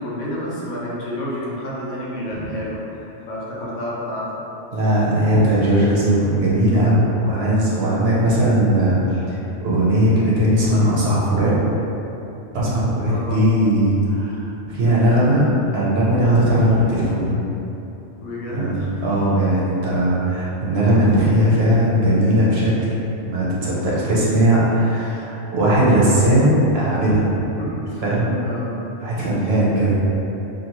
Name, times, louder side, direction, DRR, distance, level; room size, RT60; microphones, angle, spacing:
voice 1, 0.0-2.8 3.3-4.4 7.3-7.4 13.1-13.4 18.2-19.1 27.6-28.0 28.4-28.8 29.4-29.6, left 1 dB, 80° left, -5 dB, 1.0 m, -29 dB
voice 2, 4.7-11.5 12.5-15.4 15.7-17.3 18.5-18.7 19.0-22.7 23.3-27.4 28.0-28.4 29.0-29.9, right 1 dB, 60° right, -7 dB, 0.8 m, -18 dB
2.6 x 2.4 x 2.8 m, 3.0 s
omnidirectional pair, 1.2 m